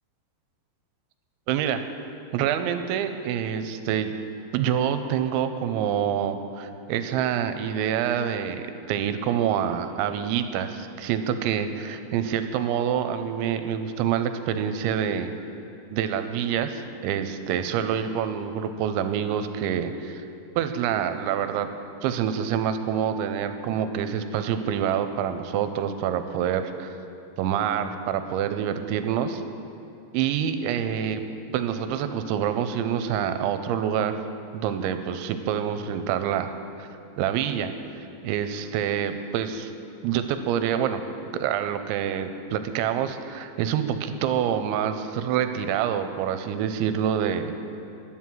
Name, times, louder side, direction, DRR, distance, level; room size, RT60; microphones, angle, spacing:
voice 1, 1.5-1.9 2.3-4.1 4.5-15.3 15.9-20.2 20.6-21.7 22.0-26.9 27.4-29.4 30.1-31.2 31.5-34.2 34.5-36.9 37.2-37.7 38.2-39.7 40.0-41.0 41.4-47.5, right 9 dB, 85° right, 9 dB, 2.9 m, -26 dB
11.5 x 11.0 x 7.5 m, 2.8 s
omnidirectional pair, 5.3 m